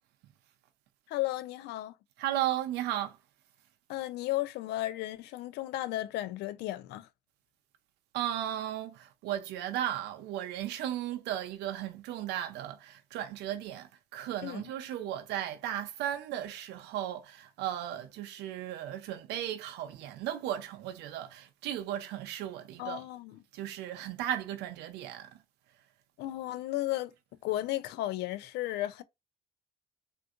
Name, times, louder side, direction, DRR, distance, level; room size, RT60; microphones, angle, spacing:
voice 1, 1.1-1.9 3.9-7.1 14.4-14.6 22.8-23.4 26.2-27.1 27.4-29.0, left 15 dB, 80° left, 0.4 m, -34 dB
voice 2, 2.2-3.2 8.1-23.0 23.5-25.3, right 12 dB, 85° right, 0.5 m, -35 dB
3.5 x 2.6 x 2.4 m
cardioid pair, 110°, 17 cm